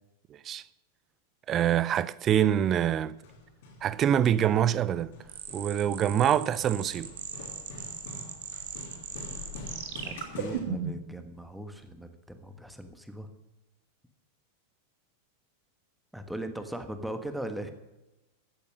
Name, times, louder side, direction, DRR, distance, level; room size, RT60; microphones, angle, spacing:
voice 1, 1.5-3.2 3.8-5.1 5.5-7.1, right 10 dB, 30° right, 0.5 m, -25 dB
Hammer, 3.0-10.6, left 2 dB, 55° left, 3.2 m, -46 dB
sound 1, 5.3-11.1, right 7 dB, 55° right, 1.7 m, -38 dB
voice 2, 10.0-13.3 16.1-17.7, right 1 dB, ahead, 1.4 m, -39 dB
14.5 x 8.7 x 6.5 m
figure-of-eight pair, 90°, 0 cm